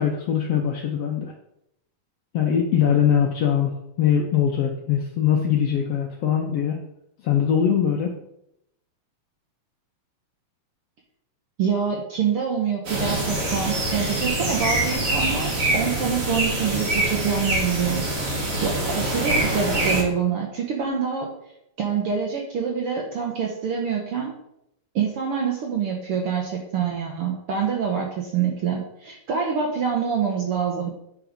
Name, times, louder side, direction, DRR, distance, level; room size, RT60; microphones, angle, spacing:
voice 1, 0.0-1.3 2.3-3.7 4.0-6.8 7.2-8.1, left 8 dB, 75° left, 2 dB, 1.4 m, -22 dB
voice 2, 11.6-18.1 18.6-21.3 21.8-24.3 24.9-30.9, right 6 dB, 65° right, 0 dB, 1.4 m, -26 dB
sound 1, 12.9-20.0, right 1 dB, 50° right, 2.8 m, -25 dB
8.7 x 4.9 x 5.1 m, 0.81 s
omnidirectional pair, 3.6 m